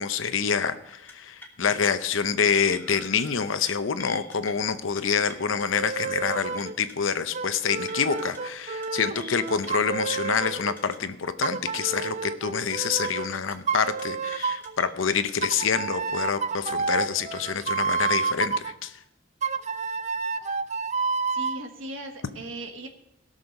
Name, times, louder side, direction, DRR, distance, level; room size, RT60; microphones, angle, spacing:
voice 1, 0.0-18.9, left 6 dB, 75° left, 11 dB, 0.7 m, -27 dB
sound 1, 0.9-1.1 1.4-1.8 2.4-3.2 3.5-3.7 4.0-4.5 5.0-5.8 6.1-6.3 6.6-6.9 7.5-8.4 8.7-8.9 9.2-9.7 10.1-11.0 11.2-11.5 11.7-12.1 12.7-13.6 13.8-14.0 14.3-14.8 15.3-15.5, left 2 dB, 10° left, 1.4 m, -46 dB
sound 2, 5.7-6.8 7.3-10.8 11.4-13.3 13.7-14.7 15.4-18.7 19.4-21.6, right 5 dB, 35° right, 0.5 m, -29 dB
voice 2, 21.3-22.9, right 1 dB, 80° right, 4 dB, 1.4 m, -38 dB
17.0 x 6.5 x 5.3 m, 0.84 s
head